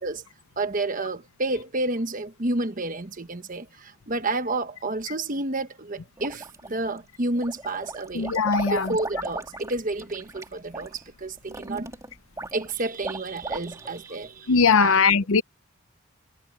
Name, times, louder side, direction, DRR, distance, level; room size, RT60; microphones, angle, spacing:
voice 1, 0.6-11.9 12.5-15.3, right 2 dB, 40° right, 1.1 m, -30 dB
sound 1, 6.2-7.0 7.4-14.1, right 2 dB, 15° right, 2.9 m, -37 dB
voice 2, 8.2-8.9 14.5-15.4, left 5 dB, 75° left, 0.7 m, -20 dB
head